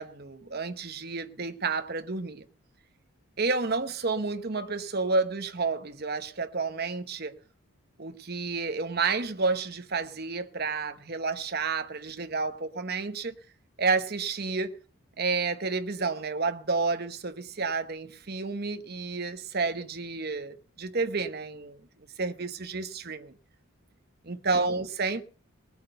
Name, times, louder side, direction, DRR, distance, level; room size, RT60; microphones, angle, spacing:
voice 1, 0.0-2.4 3.4-7.4 8.0-13.3 13.8-14.8 15.2-21.8 22.2-23.3 24.2-25.2, right 4 dB, 45° right, 1.0 m, -30 dB
19.0 x 8.4 x 5.6 m
head